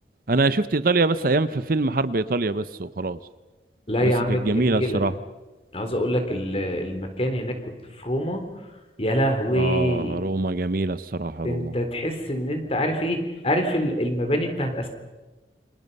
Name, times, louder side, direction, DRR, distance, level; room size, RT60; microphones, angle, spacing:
voice 1, 0.3-3.2 4.0-5.1 9.5-11.7, right 3 dB, 55° right, 14 dB, 0.8 m, -24 dB
voice 2, 3.9-5.0 5.7-8.5 9.0-10.2 11.4-14.9, equal, 35° left, 6 dB, 3.6 m, -25 dB
28.5 x 26.5 x 5.5 m, 1.2 s
head